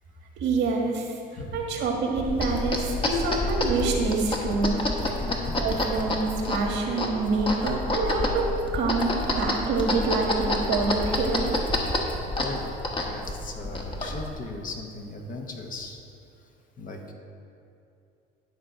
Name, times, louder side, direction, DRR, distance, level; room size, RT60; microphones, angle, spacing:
voice 1, 0.4-1.1 1.5-4.8 5.6-11.6, right 3 dB, 65° right, 1 dB, 1.5 m, -26 dB
voice 2, 1.3-1.8 5.2-5.6 12.4-16.0 16.8-17.1, left 2 dB, 45° left, 2 dB, 1.2 m, -38 dB
sound 1, 2.2-14.4, left 1 dB, 25° left, 1.2 m, -28 dB
11.0 x 3.8 x 5.6 m, 2.6 s
supercardioid pair, 95°, 20 cm